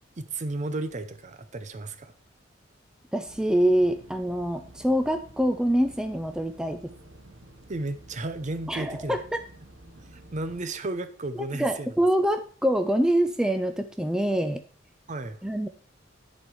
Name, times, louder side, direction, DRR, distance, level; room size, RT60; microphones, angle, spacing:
voice 1, 0.2-2.1 7.7-9.2 10.0-11.9 15.1-15.4, right 2 dB, 40° right, 11 dB, 0.7 m, -33 dB
voice 2, 3.1-6.9 8.7-9.4 11.6-14.6 15.4-15.7, right 1 dB, 5° right, 7 dB, 0.4 m, -25 dB
sound 1, 3.2-10.6, right 1 dB, 70° right, 1.3 m, -50 dB
10.5 x 4.3 x 4.7 m, 0.42 s
head